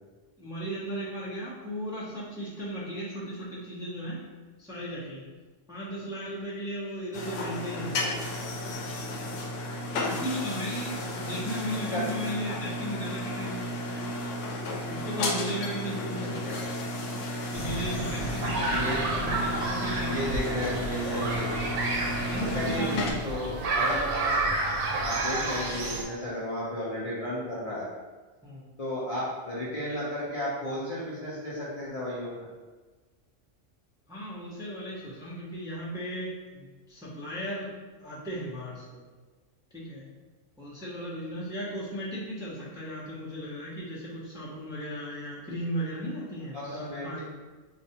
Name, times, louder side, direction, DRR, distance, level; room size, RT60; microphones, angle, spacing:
voice 1, 0.4-4.2 4.6-5.2 5.7-8.1 10.0-13.8 14.9-16.4 17.5-20.3 22.2-23.2 28.4-28.7 34.1-39.0 39.7-40.1 40.6-47.2, equal, 5° right, -7 dB, 0.6 m, -36 dB
sound 1, 7.1-23.1, left 1 dB, 80° left, 0.9 m, -33 dB
voice 2, 15.9-16.7 18.7-19.0 20.1-22.0 22.5-24.0 25.0-27.9 28.8-32.5 46.5-47.2, left 1 dB, 40° left, -9 dB, 0.6 m, -34 dB
sound 2, 17.5-26.0, right 2 dB, 70° right, 0.8 m, -30 dB
4.3 x 2.4 x 2.8 m, 1.3 s
omnidirectional pair, 1.3 m